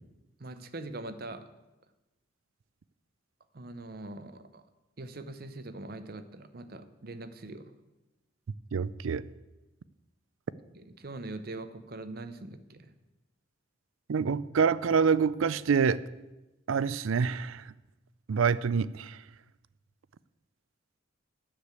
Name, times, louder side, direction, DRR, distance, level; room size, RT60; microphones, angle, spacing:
voice 1, 0.4-1.5 3.5-4.6 5.0-7.7 10.7-12.9, right 2 dB, 50° right, 11 dB, 0.7 m, -42 dB
voice 2, 8.7-9.2 14.1-16.0 16.7-17.7 18.3-19.2, right 6 dB, 85° right, 18 dB, 0.4 m, -26 dB
9.9 x 6.6 x 8.2 m, 1.0 s
head